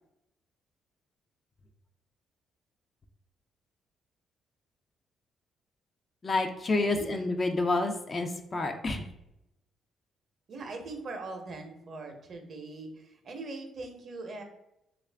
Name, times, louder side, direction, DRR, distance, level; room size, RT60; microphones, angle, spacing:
voice 1, 6.2-9.1, left 2 dB, 35° left, 6 dB, 0.4 m, -29 dB
voice 2, 6.8-7.1 10.5-14.4, right 3 dB, 55° right, 4 dB, 0.7 m, -41 dB
3.1 x 2.4 x 3.3 m, 0.85 s
cardioid pair, 90°, 0 cm